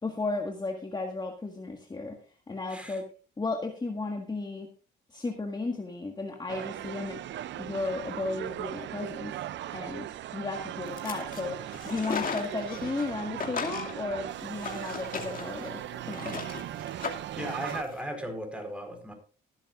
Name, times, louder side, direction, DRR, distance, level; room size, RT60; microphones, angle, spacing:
voice 1, 0.0-2.2 2.5-3.1 3.4-4.7 5.1-7.2 7.6-9.3 9.7-16.3, left 3 dB, 20° left, 3 dB, 1.7 m, -34 dB
voice 2, 2.7-3.0 17.4-19.1, equal, 5° right, 4 dB, 4.6 m, -36 dB
sound 1, 6.5-17.8, right 12 dB, 65° right, 0.5 m, -38 dB
sound 2, 10.9-11.4 11.7-13.1 13.4-17.9, left 5 dB, 45° left, 2.5 m, -37 dB
19.5 x 10.5 x 2.5 m, 0.36 s
cardioid pair, 90°, 20 cm